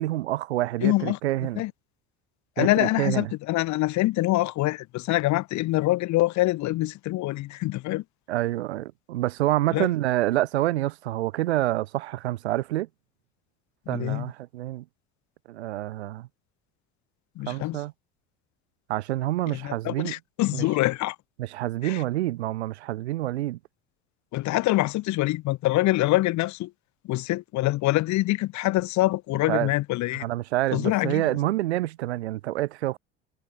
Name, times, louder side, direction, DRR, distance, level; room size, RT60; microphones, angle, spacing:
voice 1, 0.0-1.6 2.6-3.3 8.3-12.9 13.9-14.8 15.5-16.3 17.5-17.9 18.9-20.1 20.5-20.6 21.5-23.6 29.5-29.7 30.2-33.0, right 16 dB, 90° right, 1.1 m, -27 dB
voice 2, 0.8-1.7 2.6-8.0 9.7-9.9 13.9-14.3 17.4-17.8 19.5-21.2 21.8-22.0 24.3-26.7 27.0-30.3 30.7-31.4, left 18 dB, 60° left, 2.2 m, -25 dB
hypercardioid pair, 75°, 32 cm